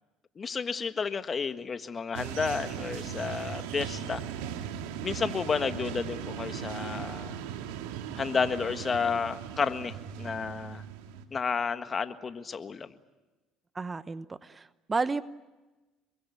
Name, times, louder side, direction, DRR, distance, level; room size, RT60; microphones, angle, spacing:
voice 1, 0.4-4.2 5.0-7.4 8.2-10.8 11.3-12.9, left 5 dB, 35° left, 10 dB, 1.6 m, -31 dB
sound 1, 2.1-11.2, right 8 dB, 80° right, 2.3 m, -38 dB
voice 2, 13.7-15.2, right 4 dB, 25° right, 15 dB, 0.9 m, -32 dB
26.5 x 23.0 x 8.4 m, 1.1 s
hypercardioid pair, 65°, 0 cm